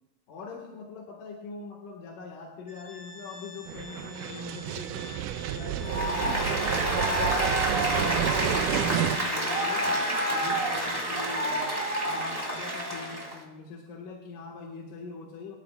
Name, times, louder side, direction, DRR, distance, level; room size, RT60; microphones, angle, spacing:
voice 1, 0.3-5.2 5.5-10.0 10.3-15.5, left 4 dB, 70° left, -2 dB, 3.0 m, -42 dB
Organ, 2.7-13.3, left 3 dB, 15° left, 2.4 m, -48 dB
sound 1, 3.7-9.2, right 11 dB, 80° right, 1.9 m, -30 dB
Applause, 5.8-13.4, right 1 dB, 10° right, 2.5 m, -28 dB
25.0 x 13.5 x 2.3 m, 1.0 s
omnidirectional pair, 4.1 m